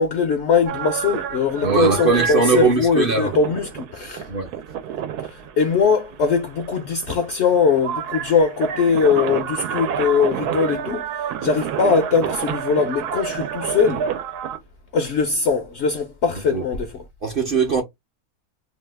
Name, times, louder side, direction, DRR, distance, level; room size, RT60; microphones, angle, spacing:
voice 1, 0.0-4.3 5.2-14.0 14.9-17.0, left 5 dB, 65° left, 0.7 m, -21 dB
sound 1, 0.7-14.6, right 8 dB, 85° right, 1.1 m, -29 dB
voice 2, 1.6-3.3 4.3-4.5 16.5-16.6 17.2-17.8, right 5 dB, 50° right, 0.7 m, -20 dB
2.8 x 2.3 x 3.2 m
omnidirectional pair, 1.6 m